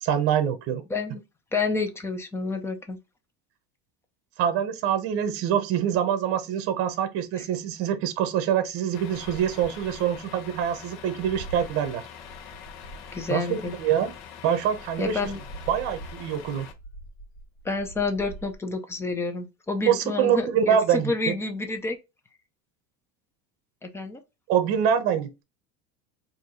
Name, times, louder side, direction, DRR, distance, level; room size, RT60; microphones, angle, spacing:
voice 1, 0.0-0.8 4.4-12.0 13.3-14.1 14.4-15.2 15.7-16.7 19.9-21.3 24.5-25.4, right 9 dB, 45° right, 0.9 m, -25 dB
voice 2, 0.9-1.2 1.5-3.0 7.4-7.5 13.1-13.7 15.0-15.4 17.6-22.0 23.8-24.2, left 3 dB, 10° left, 0.5 m, -29 dB
Truck, 8.9-16.7, left 8 dB, 80° left, 0.9 m, -44 dB
sound 1, 9.2-14.2 14.7-18.5, right 2 dB, 60° left, 1.4 m, -44 dB
4.6 x 2.7 x 2.6 m
cardioid pair, 165°, 32 cm